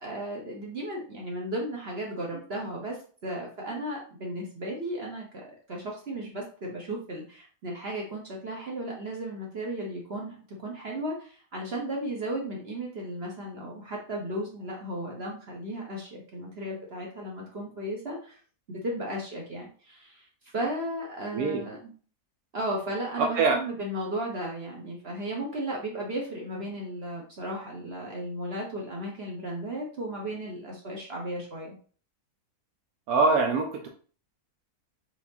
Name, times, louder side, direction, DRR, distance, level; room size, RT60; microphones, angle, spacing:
voice 1, 0.0-5.3 5.7-18.4 18.7-20.3 20.5-21.9 22.5-31.8, right 1 dB, 45° right, -1 dB, 1.1 m, -35 dB
voice 2, 33.1-33.9, right 4 dB, 75° right, 3 dB, 1.1 m, -23 dB
4.5 x 3.5 x 2.7 m, 0.41 s
omnidirectional pair, 1.6 m